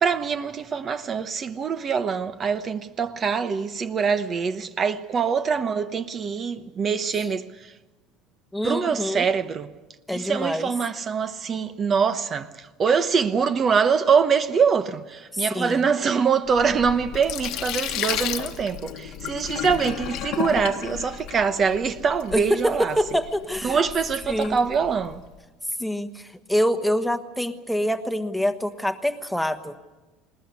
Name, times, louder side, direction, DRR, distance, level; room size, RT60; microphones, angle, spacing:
voice 1, 0.0-7.7 8.6-9.7 10.1-23.0 23.6-25.2, right 6 dB, 30° right, 1.0 m, -24 dB
voice 2, 8.5-9.3 10.1-10.7 15.3-15.9 22.3-23.8 24.3-24.6 25.8-29.7, equal, ahead, 1.3 m, -25 dB
Sink (filling or washing), 16.5-25.3, left 12 dB, 60° left, 1.3 m, -33 dB
20.5 x 20.0 x 9.6 m
cardioid pair, 135°, 0 cm